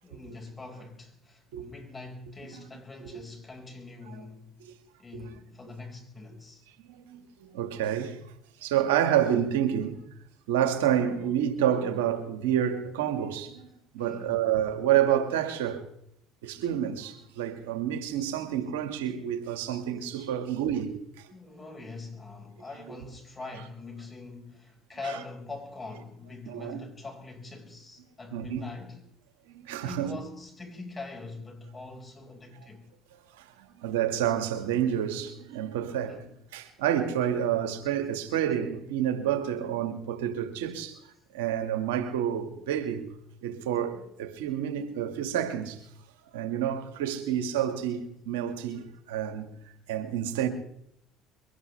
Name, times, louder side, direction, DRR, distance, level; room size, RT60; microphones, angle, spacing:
voice 1, 0.0-4.7 5.0-6.6 14.0-14.5 21.3-29.1 29.8-32.9 36.1-36.3, left 3 dB, 20° left, 5.2 m, -43 dB
voice 2, 6.8-8.2 8.6-9.9 10.5-13.7 13.9-15.8 16.4-21.3 26.5-26.8 28.3-28.6 29.5-30.1 33.4-36.2 36.5-41.0 41.3-43.1 43.4-45.8 46.3-49.5 49.9-50.5, right 10 dB, 85° right, 1.8 m, -29 dB
23.0 x 17.5 x 3.4 m
supercardioid pair, 80°, 0 cm